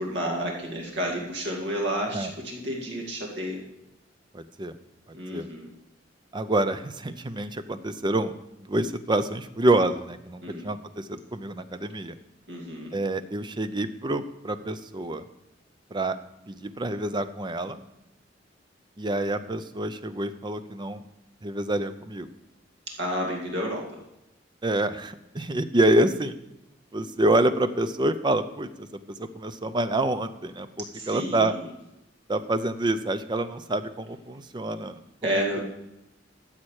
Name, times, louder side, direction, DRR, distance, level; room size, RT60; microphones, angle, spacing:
voice 1, 0.0-3.6 5.1-5.7 10.4-10.7 12.5-13.0 23.0-23.8 30.9-31.6 35.2-35.6, equal, 65° right, -1 dB, 2.2 m, -30 dB
voice 2, 4.3-4.7 5.3-5.5 6.3-8.3 8.6-12.2 12.9-15.2 15.9-16.2 16.5-17.8 19.0-21.0 21.4-22.3 24.6-26.4 26.9-28.9 29.2-31.6 32.3-35.0 35.3-35.6, right 1 dB, 25° right, 11 dB, 0.6 m, -27 dB
12.5 x 7.5 x 4.8 m, 0.91 s
head